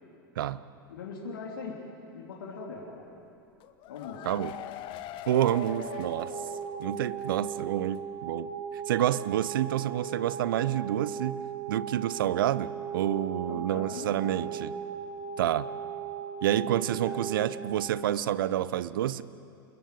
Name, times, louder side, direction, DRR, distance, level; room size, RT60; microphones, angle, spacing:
voice 1, 0.9-1.9 2.1-3.1 3.9-4.3 13.5-14.6 17.0-17.2, left 4 dB, 70° left, -1 dB, 3.3 m, -41 dB
sound 1, 3.6-7.2 7.5-7.6 7.9-8.0, left 12 dB, 45° left, 1.3 m, -42 dB
voice 2, 5.3-6.3 6.8-11.4 11.7-14.7 15.4-15.7 16.4-19.2, right 12 dB, 70° right, 17 dB, 0.8 m, -28 dB
sound 2, 5.5-17.8, right 7 dB, 40° right, 1.8 m, -38 dB
28.0 x 22.0 x 9.4 m, 2.6 s
hypercardioid pair, 90°, 12 cm